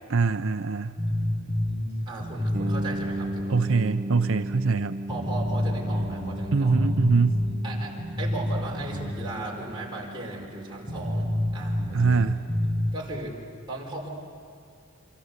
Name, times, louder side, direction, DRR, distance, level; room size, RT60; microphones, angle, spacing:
voice 1, 0.1-1.0 3.5-5.0 6.5-7.5 11.9-12.4, right 4 dB, 70° right, 9 dB, 0.6 m, -23 dB
sound 1, 1.0-3.6 3.8-3.9 4.5-4.6 5.1-9.3 9.6-9.7 10.3-10.4 10.9-12.9, left 1 dB, 20° left, 7.2 m, -28 dB
voice 2, 2.1-3.7 5.1-6.8 7.6-11.3 11.5-12.2 12.9-13.4 13.7-14.1, right 2 dB, 25° right, -3 dB, 5.1 m, -37 dB
sound 2, 2.5-12.2, right 1 dB, 40° right, 1.0 m, -37 dB
28.0 x 25.5 x 8.2 m, 2.4 s
head